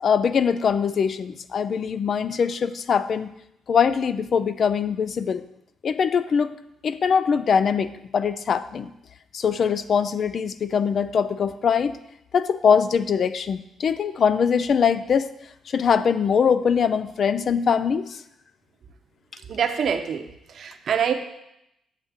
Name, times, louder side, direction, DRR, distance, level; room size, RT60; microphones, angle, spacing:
voice 1, 0.0-3.3 3.7-5.5 5.8-6.5 6.8-8.9 9.3-12.0 12.3-15.3 15.7-18.2, left 6 dB, 55° left, 13 dB, 0.4 m, -22 dB
voice 2, 19.5-21.1, right 7 dB, 60° right, 6 dB, 0.7 m, -25 dB
7.4 x 7.2 x 3.5 m, 0.82 s
cardioid pair, 90°, 0 cm